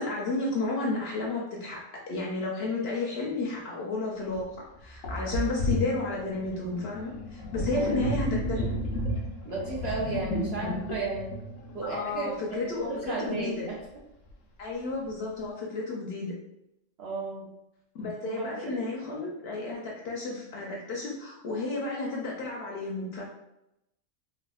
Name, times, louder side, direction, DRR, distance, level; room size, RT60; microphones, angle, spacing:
voice 1, 0.0-8.8 11.8-13.7 14.6-16.4 17.9-23.2, left 3 dB, 60° left, -2 dB, 0.7 m, -32 dB
Sink (filling or washing), 4.3-4.4 5.0-12.3, left 1 dB, 80° left, 1.0 m, -32 dB
voice 2, 7.5-8.1 9.4-11.3 11.7-13.8 17.0-17.5 18.2-18.8, right 3 dB, 60° right, -3 dB, 0.8 m, -34 dB
3.3 x 2.4 x 2.2 m, 0.84 s
omnidirectional pair, 1.4 m